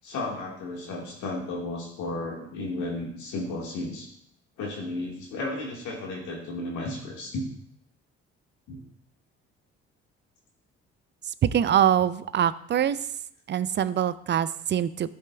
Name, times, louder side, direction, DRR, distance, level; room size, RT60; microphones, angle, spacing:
voice 1, 0.0-4.1 4.6-7.5 8.7-8.8, left 2 dB, 70° left, -2 dB, 1.8 m, -33 dB
voice 2, 11.4-13.0 13.5-15.1, right 10 dB, 35° right, 16 dB, 0.4 m, -24 dB
11.5 x 5.1 x 2.3 m, 0.69 s
hypercardioid pair, 60°, 30 cm